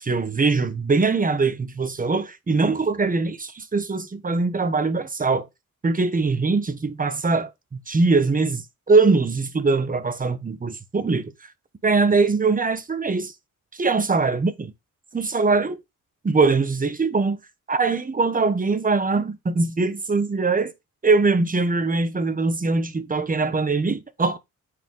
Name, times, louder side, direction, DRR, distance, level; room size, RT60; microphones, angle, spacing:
voice 1, 0.0-5.5 5.8-11.3 11.8-13.3 13.7-14.7 15.1-15.8 16.2-17.4 17.7-20.7 21.0-24.4, right 4 dB, 25° right, 1.2 m, -22 dB
9.2 x 4.9 x 3.9 m
wide cardioid pair, 130°, 33 cm